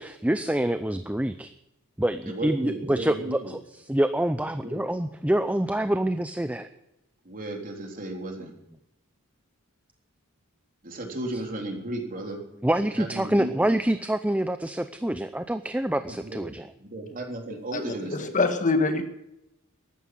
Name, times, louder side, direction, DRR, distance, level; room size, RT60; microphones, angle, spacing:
voice 1, 0.0-1.5 2.0-3.6 3.9-6.7 12.6-16.6, right 1 dB, 5° right, 0.6 m, -26 dB
voice 2, 2.2-3.6 4.6-4.8 7.3-8.5 10.8-12.4 13.0-13.7 16.1-18.5, right 1 dB, 40° right, 3.7 m, -35 dB
voice 3, 18.1-19.0, left 3 dB, 35° left, 1.6 m, -23 dB
14.0 x 11.5 x 7.8 m
head